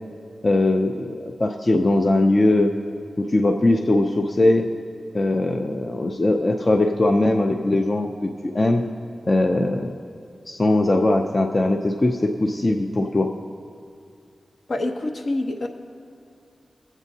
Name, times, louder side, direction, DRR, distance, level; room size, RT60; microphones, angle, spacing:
voice 1, 0.4-2.7 3.2-4.7 5.1-8.8 9.3-9.9 10.5-13.3, left 2 dB, 35° left, 4 dB, 0.5 m, -20 dB
voice 2, 14.7-15.7, left 2 dB, 60° left, 4 dB, 0.8 m, -26 dB
19.5 x 8.1 x 2.7 m, 2.5 s
wide cardioid pair, 100°, 0 cm